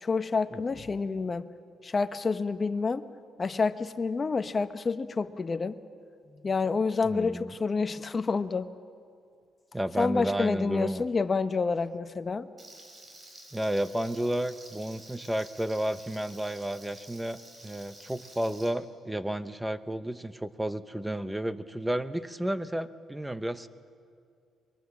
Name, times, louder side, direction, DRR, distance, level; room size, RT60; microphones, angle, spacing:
voice 1, 0.0-1.5 1.8-3.1 3.4-5.8 6.3-8.7 10.0-12.5, left 4 dB, 35° left, 11 dB, 0.9 m, -28 dB
voice 2, 7.0-7.5 9.7-11.0 13.5-23.7, right 1 dB, 5° right, 13 dB, 0.9 m, -32 dB
Frying (food), 12.6-18.7, right 2 dB, 35° right, 4.7 m, -50 dB
23.5 x 21.5 x 7.2 m, 2.3 s
cardioid pair, 90°, 0 cm